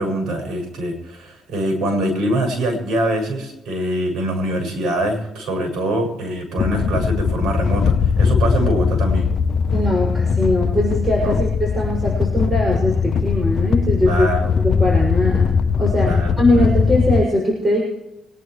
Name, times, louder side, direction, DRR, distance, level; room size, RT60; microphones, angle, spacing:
voice 1, 0.0-9.3 11.2-11.4 14.1-14.5 16.0-16.7, right 1 dB, 75° right, 3 dB, 6.9 m, -24 dB
sound 1, 6.6-17.3, left 6 dB, 60° left, 0.8 m, -19 dB
voice 2, 9.7-14.3 14.6-15.5 15.8-16.1 16.4-17.8, left 1 dB, 20° right, -3 dB, 6.7 m, -20 dB
25.0 x 11.0 x 3.3 m, 0.94 s
cardioid pair, 90°, 0 cm